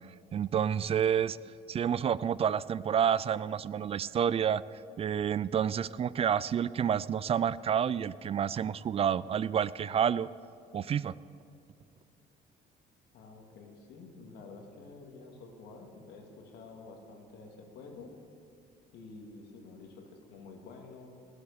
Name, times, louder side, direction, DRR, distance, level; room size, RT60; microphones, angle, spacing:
voice 1, 0.3-1.4 1.7-4.6 5.0-10.3 10.7-11.1, right 8 dB, 35° right, 19 dB, 0.3 m, -29 dB
voice 2, 13.1-18.1 18.9-21.1, left 3 dB, 80° left, 2 dB, 2.5 m, -49 dB
19.0 x 7.9 x 7.0 m, 2.5 s
cardioid pair, 110°, 17 cm